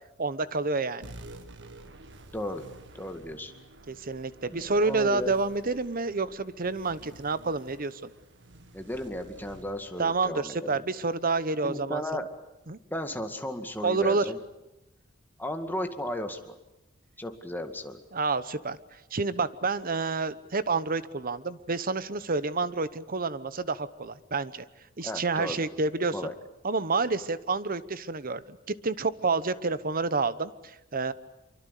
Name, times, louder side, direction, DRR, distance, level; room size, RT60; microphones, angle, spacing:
voice 1, 0.2-1.1 3.9-8.1 10.0-12.0 12.7-12.8 13.8-14.2 18.1-18.8 19.1-24.6 25.0-26.2 26.6-31.1, right 3 dB, 45° right, 15 dB, 1.0 m, -29 dB
sound 1, 1.0-11.9, right 1 dB, 65° right, 1.8 m, -51 dB
voice 2, 2.3-2.6 2.9-3.5 4.5-5.3 8.7-10.8 11.6-12.2 12.9-14.4 15.4-16.5 17.2-18.0 25.0-25.6 26.1-26.3, left 1 dB, 10° left, 5 dB, 2.1 m, -35 dB
25.5 x 24.0 x 8.4 m, 0.95 s
head